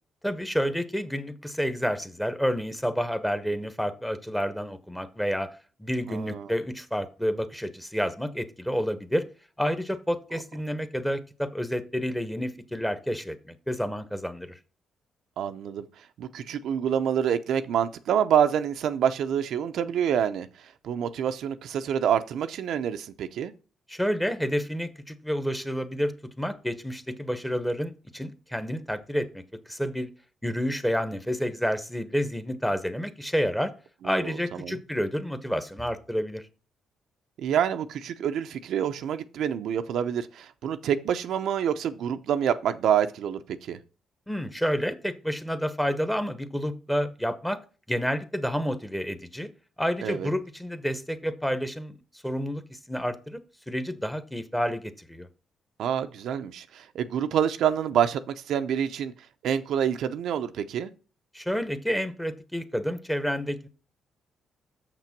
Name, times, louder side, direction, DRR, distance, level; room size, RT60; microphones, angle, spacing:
voice 1, 0.2-5.5 5.8-9.2 9.6-14.6 23.9-29.4 29.7-30.1 30.4-33.7 34.0-36.4 44.3-47.6 47.9-49.5 49.8-52.0 52.2-53.4 53.7-55.3 61.3-63.7, equal, 5° left, 1.0 m, -29 dB
voice 2, 6.1-6.5 15.4-15.8 16.2-20.5 20.8-23.5 34.1-34.3 34.6-34.8 37.4-43.4 43.7-43.8 50.0-50.3 55.8-58.2 58.5-59.1 59.4-60.9, right 9 dB, 75° right, 0.6 m, -27 dB
6.7 x 6.0 x 5.9 m
cardioid pair, 90°, 0 cm